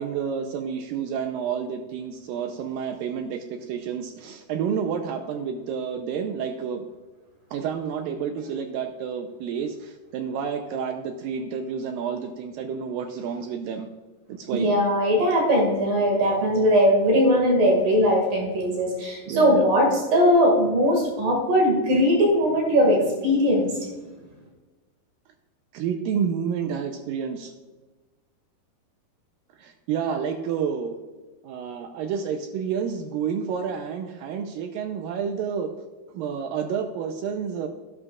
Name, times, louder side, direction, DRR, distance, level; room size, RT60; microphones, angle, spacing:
voice 1, 0.0-6.9 7.5-13.9 14.3-14.7 19.3-19.7 25.7-27.5 29.6-31.0 31.4-35.7 36.1-37.7, right 7 dB, 85° right, 6 dB, 2.1 m, -29 dB
voice 2, 14.5-23.7, equal, 60° right, 1 dB, 3.5 m, -20 dB
12.0 x 11.0 x 2.4 m, 1.2 s
omnidirectional pair, 4.7 m